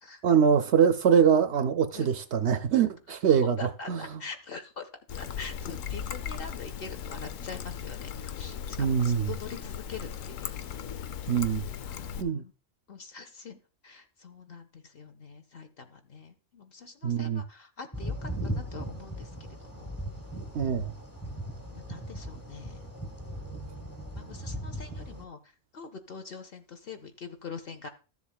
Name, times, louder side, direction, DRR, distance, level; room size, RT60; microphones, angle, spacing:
voice 1, 0.2-3.6 3.9-4.2 8.8-9.3 11.3-11.6 12.2-12.4 17.0-17.4 20.5-20.9, right 7 dB, 65° right, 0.8 m, -23 dB
voice 2, 3.6-4.9 5.2-10.6 11.8-12.5 12.9-19.3 19.6-19.9 21.7-22.8 24.1-25.4 25.7-27.9, left 5 dB, 50° left, 0.9 m, -44 dB
Trickle dribble, 5.1-12.2, left 8 dB, 80° left, 1.0 m, -37 dB
sound 1, 17.9-25.3, equal, 15° left, 1.3 m, -38 dB
13.5 x 7.2 x 2.3 m
omnidirectional pair, 1.4 m